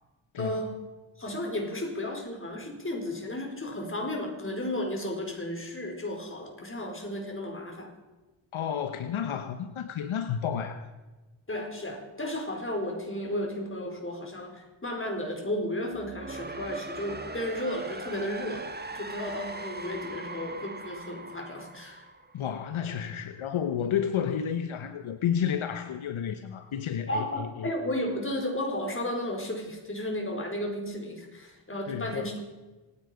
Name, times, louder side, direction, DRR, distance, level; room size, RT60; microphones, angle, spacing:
voice 1, 0.4-0.8 1.2-7.9 11.5-18.7 18.9-22.1 27.1-32.4, left 1 dB, 25° left, 4.7 m, -33 dB
voice 2, 8.5-10.9 22.3-27.7 31.9-32.3, left 8 dB, 80° left, 1.1 m, -31 dB
sound 1, 15.9-22.8, right 2 dB, 20° right, 1.4 m, -41 dB
26.0 x 9.8 x 5.2 m
cardioid pair, 70°, 48 cm